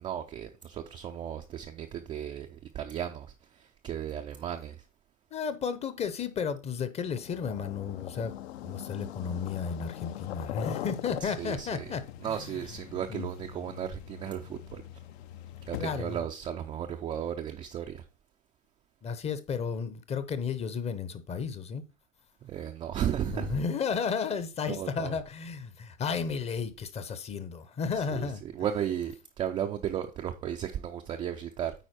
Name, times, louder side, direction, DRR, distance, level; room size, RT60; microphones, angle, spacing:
voice 1, 0.0-3.3 3.5-4.8 11.2-11.9 12.2-14.8 15.7-18.0 22.4-23.6 24.7-25.1 28.5-31.7, right 9 dB, 15° right, 0.4 m, -35 dB
voice 2, 5.3-8.3 8.6-12.6 13.1-13.3 15.8-16.2 19.0-21.8 23.3-28.4, left 6 dB, 15° left, 0.7 m, -33 dB
sound 1, 7.1-16.2, left 12 dB, 55° left, 0.6 m, -42 dB
9.1 x 4.4 x 4.2 m
hypercardioid pair, 110°, 38 cm